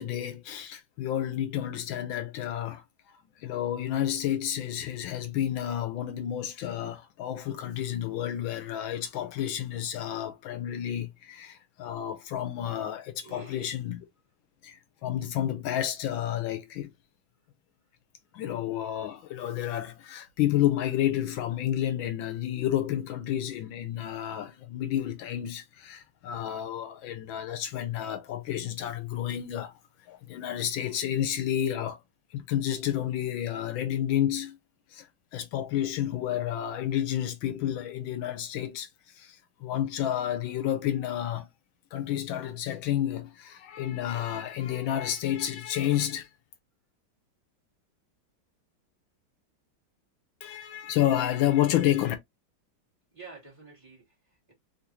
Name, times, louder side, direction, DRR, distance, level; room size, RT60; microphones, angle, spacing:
voice 1, 0.0-2.8 3.4-14.0 14.6-16.9 18.3-29.7 30.0-32.0 32.3-34.6 34.9-38.9 39.1-41.5 41.9-46.3 50.4-52.1, left 11 dB, 75° left, 1.3 m, -30 dB
voice 2, 13.2-13.7 53.1-54.5, right 4 dB, 20° right, 1.3 m, -49 dB
3.6 x 2.5 x 2.7 m
omnidirectional pair, 2.2 m